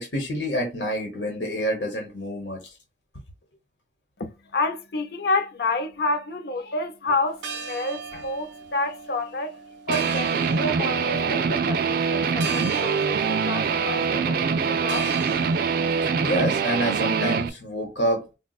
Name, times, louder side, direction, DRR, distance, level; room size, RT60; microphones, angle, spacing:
voice 1, 0.0-2.7 16.2-18.2, equal, 75° left, 1.0 m, -27 dB
voice 2, 4.2-9.6 9.9-15.1, left 2 dB, 60° left, 0.5 m, -29 dB
sound 1, 7.3-16.3, right 4 dB, 90° right, 0.7 m, -38 dB
Guitar, 9.9-17.5, right 5 dB, 55° right, 0.3 m, -24 dB
4.2 x 2.2 x 2.3 m
head